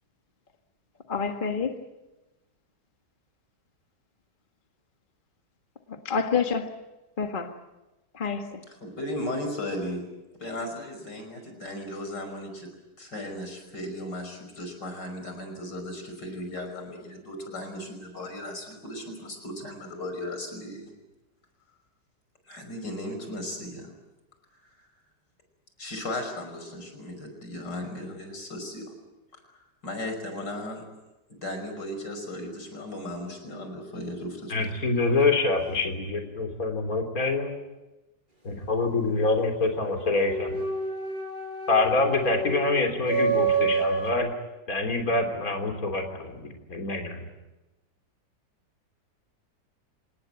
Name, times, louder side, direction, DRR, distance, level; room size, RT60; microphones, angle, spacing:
voice 1, 1.1-1.8 5.9-6.7 7.2-7.5 8.1-8.6, left 5 dB, 30° left, 5 dB, 1.7 m, -28 dB
voice 2, 8.8-10.0 10.4-12.7 13.0-20.9 22.5-23.9 25.8-28.9 29.5-30.8 31.3-35.1, left 1 dB, 85° left, 5 dB, 6.2 m, -36 dB
voice 3, 34.5-37.5 38.4-40.6 41.7-44.3 44.7-47.3, left 3 dB, 55° left, 4 dB, 3.8 m, -26 dB
sound 1, 40.2-44.1, right 5 dB, 30° right, 4.7 m, -28 dB
26.5 x 19.5 x 9.0 m, 1.0 s
omnidirectional pair, 1.8 m